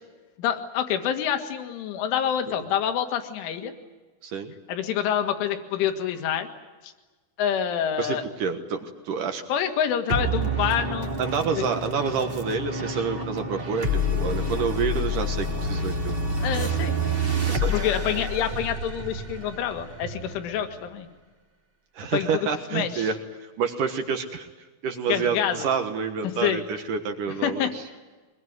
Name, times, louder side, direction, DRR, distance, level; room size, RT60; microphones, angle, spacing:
voice 1, 0.4-3.7 4.7-6.5 6.8-6.9 7.4-8.2 9.5-11.1 11.6-11.7 16.4-17.0 17.7-21.1 22.1-23.1 25.1-25.7 26.2-26.6 27.4-27.7, left 9 dB, 75° left, 7 dB, 4.2 m, -27 dB
voice 2, 4.2-4.5 8.0-9.4 11.2-16.2 17.5-17.8 22.0-24.5 24.8-27.8, right 6 dB, 65° right, 6 dB, 2.1 m, -28 dB
sound 1, 10.1-20.9, equal, 45° right, 0.7 m, -28 dB
24.0 x 21.5 x 9.5 m, 1.3 s
omnidirectional pair, 5.7 m